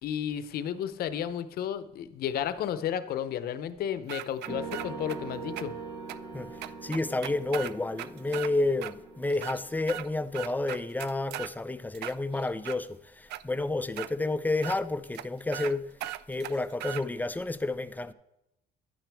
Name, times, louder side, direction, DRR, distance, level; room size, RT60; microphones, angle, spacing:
voice 1, 0.0-5.7, left 9 dB, 65° left, 0.7 m, -33 dB
sound 1, 4.1-5.2 5.6-5.7 6.1-6.2 6.6-8.5 8.8-8.9 9.3-10.1 10.3-11.5 11.9-12.8 13.3-13.4 14.0-14.1 14.6-14.8 15.1-15.2 15.5-15.7 16.0-17.0, right 14 dB, 80° right, 0.4 m, -38 dB
sound 2, 4.5-11.4, right 4 dB, 25° right, 1.9 m, -43 dB
voice 2, 6.3-15.9 16.3-18.1, left 2 dB, 10° left, 0.5 m, -30 dB
11.0 x 9.1 x 3.5 m
cardioid pair, 110°, 17 cm